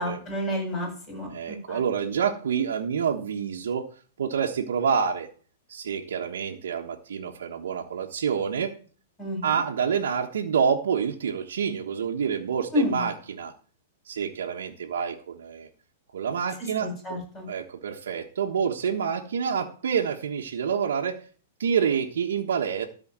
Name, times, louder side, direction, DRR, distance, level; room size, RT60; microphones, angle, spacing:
voice 1, 0.0-1.8 9.2-9.6 12.7-13.1 16.8-17.5, left 1 dB, 15° left, 1 dB, 7.7 m, -30 dB
voice 2, 1.3-3.9 4.2-5.3 5.7-8.7 9.4-13.5 14.1-15.7 16.1-17.2 17.5-21.3 21.6-22.9, right 7 dB, 90° right, 0 dB, 1.4 m, -27 dB
13.0 x 5.0 x 7.5 m, 0.40 s
hypercardioid pair, 155°, 0 cm